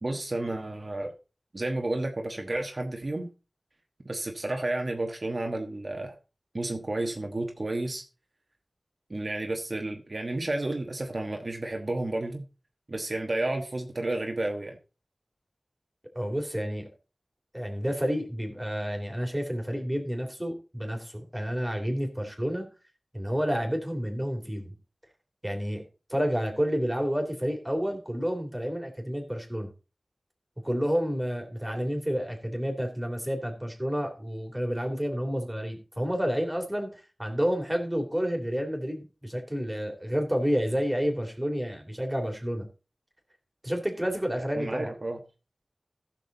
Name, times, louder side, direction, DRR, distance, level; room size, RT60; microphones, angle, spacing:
voice 1, 0.0-1.1 1.5-3.3 4.0-6.1 6.5-8.0 9.1-12.4 12.9-14.8 44.6-45.2, right 2 dB, 50° right, 1.3 m, -31 dB
voice 2, 16.1-16.8 17.5-22.6 23.1-24.7 25.4-25.8 26.1-29.7 30.6-42.7 43.6-44.9, equal, 10° right, 3.0 m, -30 dB
15.0 x 6.4 x 3.9 m
wide cardioid pair, 50°, 0 cm